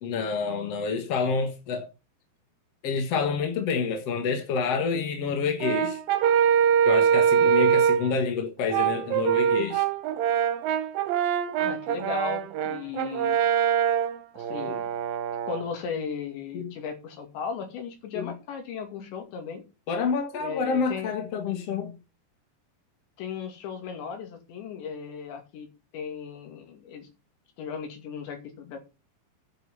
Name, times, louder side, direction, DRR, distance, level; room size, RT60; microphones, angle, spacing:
voice 1, 0.0-1.9 2.8-6.0 6.9-9.8 16.5-16.7 18.1-18.3 19.9-22.0, left 5 dB, 55° left, 1.8 m, -28 dB
Brass instrument, 5.6-8.1 8.7-15.7, right 8 dB, 70° right, 2.4 m, -24 dB
voice 2, 11.6-13.4 14.3-14.8 15.4-19.6 20.4-21.1 23.2-25.7 25.9-27.1 27.6-28.8, left 6 dB, 85° left, 4.8 m, -36 dB
9.2 x 8.0 x 5.6 m
omnidirectional pair, 5.0 m